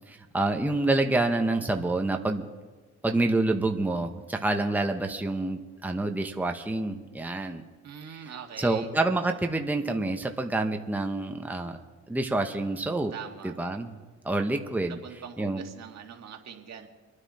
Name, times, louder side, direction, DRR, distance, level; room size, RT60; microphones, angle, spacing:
voice 1, 0.1-2.4 3.0-7.6 8.1-8.3 8.6-11.8 12.1-13.1 13.4-14.0 14.2-15.0 15.4-15.6, right 2 dB, 5° right, 4 dB, 1.0 m, -27 dB
voice 2, 7.8-8.9 13.1-13.5 14.9-16.9, right 8 dB, 60° right, 2 dB, 2.0 m, -42 dB
26.0 x 9.8 x 4.3 m, 1.3 s
cardioid pair, 90°, 30 cm